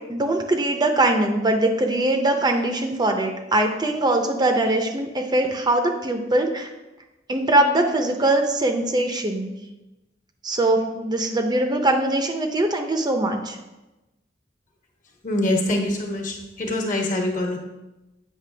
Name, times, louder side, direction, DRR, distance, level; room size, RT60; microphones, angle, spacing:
voice 1, 0.1-6.7 7.3-9.5 10.4-13.6, right 1 dB, 25° right, 4 dB, 0.6 m, -22 dB
voice 2, 15.2-17.6, left 1 dB, 45° left, 1 dB, 1.2 m, -24 dB
8.3 x 5.5 x 3.3 m, 1.0 s
head